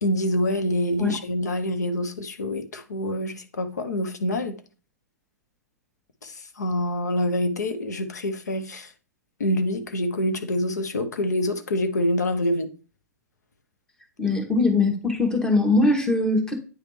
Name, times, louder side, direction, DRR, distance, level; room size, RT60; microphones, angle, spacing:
voice 1, 0.0-4.5 6.2-8.9 9.4-12.7, left 1 dB, 80° left, 0.8 m, -26 dB
voice 2, 14.2-16.5, left 3 dB, 5° left, 1.2 m, -21 dB
9.4 x 3.3 x 3.1 m
figure-of-eight pair, 110°, 9 cm